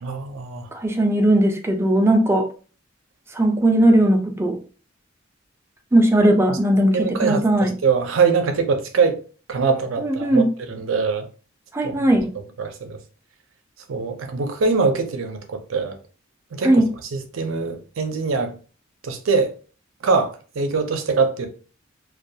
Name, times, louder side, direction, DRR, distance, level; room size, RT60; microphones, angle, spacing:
voice 1, 0.0-0.7 6.5-6.6 6.9-9.2 9.5-11.3 11.8-11.9 12.6-13.0 13.9-16.0 16.5-16.8 17.1-18.6 19.0-19.5 20.0-21.5, right 5 dB, 90° right, 0.5 m, -23 dB
voice 2, 0.7-2.5 3.3-4.6 5.9-7.7 10.0-10.5 11.7-12.3 16.6-16.9, right 1 dB, 15° right, 0.4 m, -18 dB
2.3 x 2.3 x 2.7 m
head